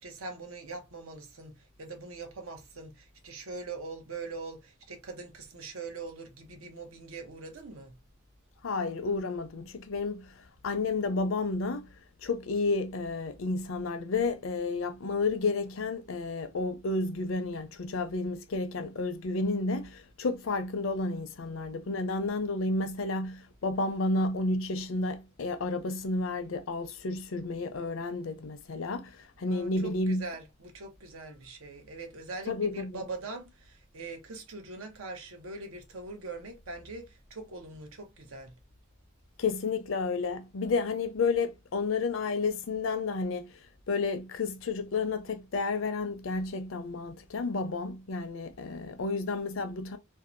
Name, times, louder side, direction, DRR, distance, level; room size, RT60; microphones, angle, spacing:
voice 1, 0.0-8.0 29.4-38.5, right 3 dB, 90° right, 0.8 m, -42 dB
voice 2, 8.6-11.9 12.2-30.2 32.5-33.0 39.4-50.0, left 3 dB, 70° left, 0.5 m, -31 dB
2.6 x 2.1 x 2.5 m
head